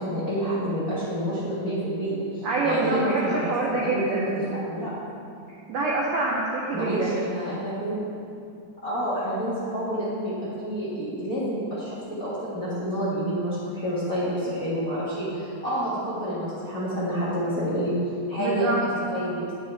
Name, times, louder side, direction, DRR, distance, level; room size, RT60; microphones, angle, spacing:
voice 1, 0.0-4.9 6.7-8.0 8.8-17.9 18.3-18.7 19.1-19.4, equal, 35° left, -10 dB, 1.5 m, -28 dB
voice 2, 2.4-4.3 5.7-7.2 18.4-18.8, right 3 dB, 75° right, -3 dB, 1.6 m, -26 dB
9.9 x 9.3 x 3.4 m, 2.5 s
omnidirectional pair, 4.0 m